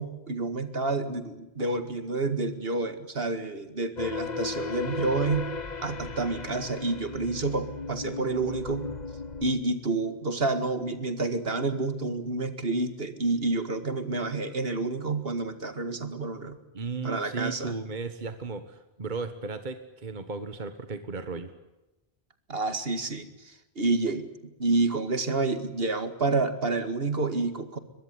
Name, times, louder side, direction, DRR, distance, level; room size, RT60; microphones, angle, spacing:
voice 1, 0.0-5.5 5.8-8.9 9.4-16.6 17.0-17.8 22.5-24.3 24.6-27.8, right 3 dB, 65° right, 10 dB, 2.2 m, -29 dB
sound 1, 4.0-9.5, left 4 dB, 45° left, 1.3 m, -35 dB
voice 2, 16.7-21.5, right 4 dB, 45° right, 10 dB, 1.6 m, -35 dB
22.5 x 22.0 x 9.6 m, 0.97 s
omnidirectional pair, 1.1 m